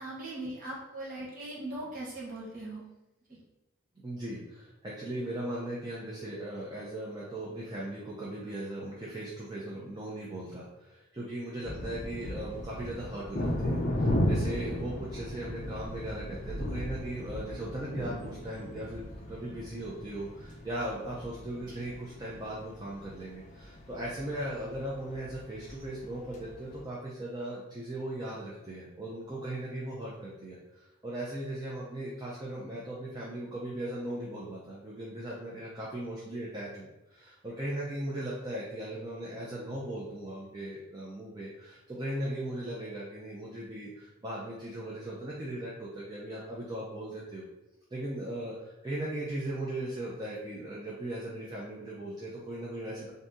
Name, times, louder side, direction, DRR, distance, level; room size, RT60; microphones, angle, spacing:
voice 1, 0.0-2.8 21.7-21.8, right 1 dB, 45° right, -6 dB, 0.9 m, -39 dB
voice 2, 4.0-19.0 19.3-47.4 47.9-53.1, right 1 dB, 20° right, -6 dB, 0.5 m, -38 dB
sound 1, 11.6-26.8, left 1 dB, 35° left, 0.5 m, -36 dB
2.6 x 2.6 x 3.6 m, 0.98 s
head